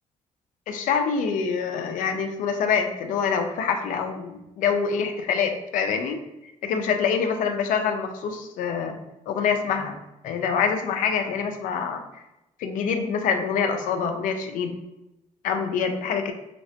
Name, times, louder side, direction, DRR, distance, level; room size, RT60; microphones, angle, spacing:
voice 1, 0.7-6.2 6.6-9.0 9.3-10.0 10.2-12.0 12.6-14.8 15.4-16.3, left 6 dB, 85° left, 6 dB, 0.4 m, -25 dB
3.2 x 2.9 x 2.8 m, 0.95 s
cardioid pair, 125°, 13 cm